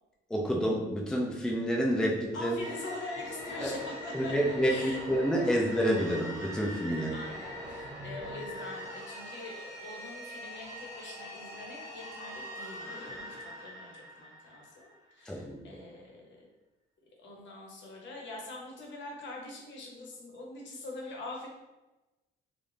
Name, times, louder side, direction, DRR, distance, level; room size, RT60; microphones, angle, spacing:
voice 1, 0.3-2.6 3.6-3.7 4.1-7.1 15.3-15.6, equal, 5° left, -2 dB, 0.4 m, -28 dB
voice 2, 2.3-4.3 4.7-5.0 6.9-16.2 17.2-21.5, left 2 dB, 65° left, -1 dB, 0.8 m, -44 dB
sound 1, 2.6-15.1, equal, 15° right, 1.1 m, -42 dB
2.4 x 2.1 x 3.2 m, 1.1 s
cardioid pair, 90°, 20 cm